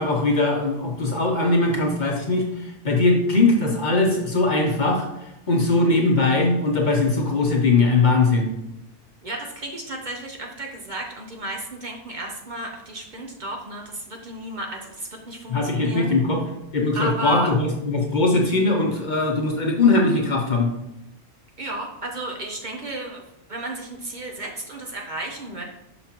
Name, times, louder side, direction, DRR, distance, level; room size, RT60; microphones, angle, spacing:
voice 1, 0.0-5.1 5.5-8.5 15.5-16.4 16.7-20.7, left 3 dB, 45° left, 1 dB, 0.9 m, -20 dB
voice 2, 9.2-16.1 16.9-17.5 21.6-23.2 23.5-25.6, right 2 dB, 45° right, 1 dB, 0.9 m, -33 dB
5.8 x 5.7 x 2.9 m, 0.86 s
omnidirectional pair, 1.2 m